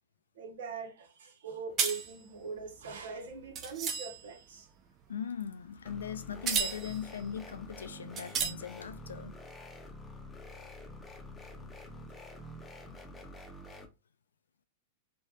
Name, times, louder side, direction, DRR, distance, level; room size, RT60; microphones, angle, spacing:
voice 1, 0.3-4.7, right 5 dB, 75° right, 0.8 m, -42 dB
sound 1, 1.8-4.4 5.8-6.0 6.5-7.2 7.6-7.7 8.2-8.5, right 6 dB, 35° right, 0.6 m, -33 dB
voice 2, 5.1-9.4, left 8 dB, 80° left, 0.3 m, -40 dB
sound 2, 5.8-13.9, left 1 dB, 10° left, 0.7 m, -47 dB
3.2 x 2.3 x 2.8 m
hypercardioid pair, 105°, 0 cm